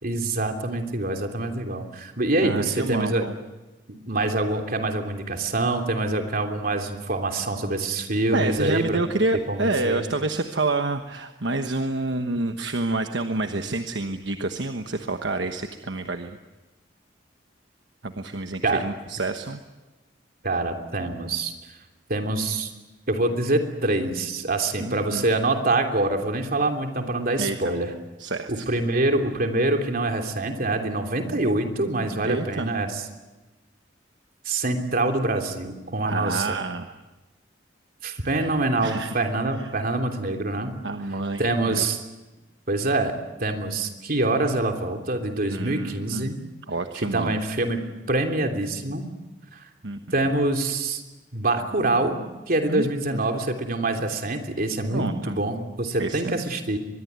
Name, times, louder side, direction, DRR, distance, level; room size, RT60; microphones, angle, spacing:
voice 1, 0.0-3.2 4.1-9.0 9.5-10.1 18.6-18.8 20.4-21.5 22.1-22.7 23.1-27.9 28.5-33.0 34.4-36.6 38.0-40.7 41.4-42.0 42.7-43.1 43.4-46.4 47.1-47.8 48.1-49.0 49.5-49.6 50.1-51.0 51.3-52.2 52.5-56.8, right 2 dB, 50° right, 4 dB, 3.2 m, -25 dB
voice 2, 2.4-3.4 8.3-16.4 18.0-19.6 24.8-25.3 27.4-27.7 28.2-28.6 32.2-32.7 36.0-36.9 38.3-38.5 38.8-39.1 40.8-41.9 45.5-46.3 46.7-47.5 49.8-50.0 52.7-53.2 54.9-55.4 56.0-56.4, right 2 dB, 70° right, 6 dB, 1.2 m, -28 dB
24.0 x 22.0 x 9.6 m, 1.1 s
head